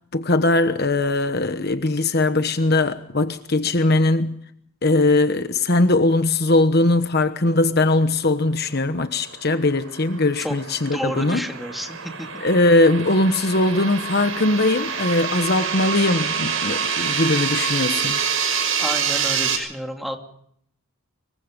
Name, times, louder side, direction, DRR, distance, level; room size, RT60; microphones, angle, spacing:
voice 1, 0.1-4.4 4.8-11.4 12.4-18.2, left 2 dB, 50° left, 1.2 m, -20 dB
sound 1, 9.1-19.6, right 6 dB, 70° right, 5.9 m, -26 dB
voice 2, 10.9-12.3 18.8-20.2, equal, ahead, 2.6 m, -30 dB
25.5 x 23.0 x 5.3 m
head